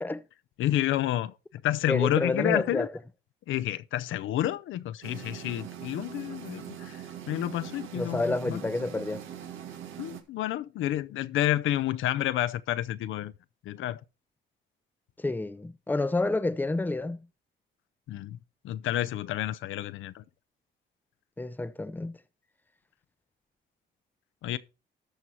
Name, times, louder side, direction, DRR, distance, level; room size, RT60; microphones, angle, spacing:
voice 1, 0.6-2.9 3.5-8.6 10.0-13.3 13.6-14.0 18.1-18.4 18.6-20.2 24.4-24.6, left 13 dB, 80° left, 0.6 m, -30 dB
voice 2, 1.9-2.9 7.9-9.2 15.2-17.3 21.4-22.2, left 2 dB, 10° left, 0.7 m, -29 dB
sound 1, 5.0-10.2, right 9 dB, 80° right, 1.7 m, -42 dB
13.0 x 4.5 x 5.5 m
cardioid pair, 90°, 20 cm